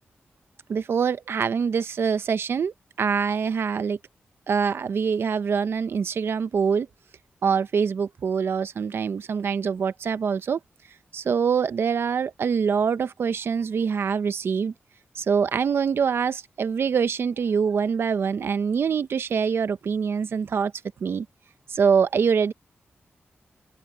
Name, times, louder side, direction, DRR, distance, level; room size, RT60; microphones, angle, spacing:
voice 1, 0.7-4.0 4.5-6.9 7.4-10.6 11.1-14.7 15.1-20.7 21.0-21.3 21.7-22.5, right 6 dB, 70° right, 0.9 m, -24 dB
wide cardioid pair, 105°, 4 cm